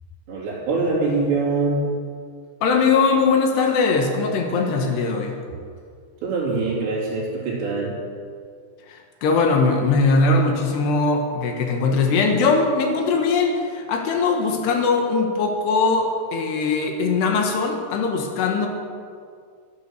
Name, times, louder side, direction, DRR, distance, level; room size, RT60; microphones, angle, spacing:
voice 1, 0.3-1.9 6.2-8.0, right 3 dB, 70° right, -6 dB, 5.8 m, -23 dB
voice 2, 2.6-5.3 8.9-18.7, left 4 dB, 75° left, 3 dB, 3.4 m, -20 dB
13.0 x 12.0 x 6.5 m, 2.1 s
omnidirectional pair, 5.1 m